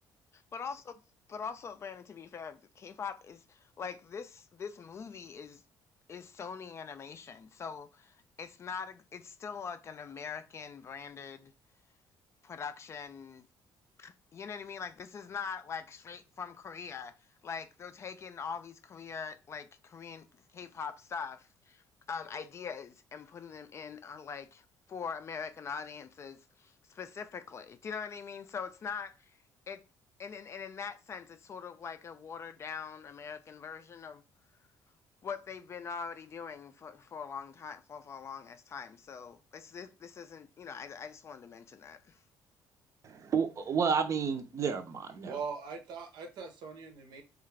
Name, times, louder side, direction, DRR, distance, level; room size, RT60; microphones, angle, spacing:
voice 1, 0.5-0.8 1.3-5.6 6.1-11.5 12.4-13.5 14.0-17.1 17.4-21.8 22.1-29.3 29.7-29.8 30.2-34.2 35.2-42.2, left 6 dB, 35° left, 0.4 m, -42 dB
voice 2, 43.0-45.4, right 6 dB, 40° right, 0.5 m, -31 dB
voice 3, 45.2-47.2, right 5 dB, 70° right, 0.8 m, -41 dB
3.6 x 2.4 x 3.2 m
cardioid pair, 125°, 8 cm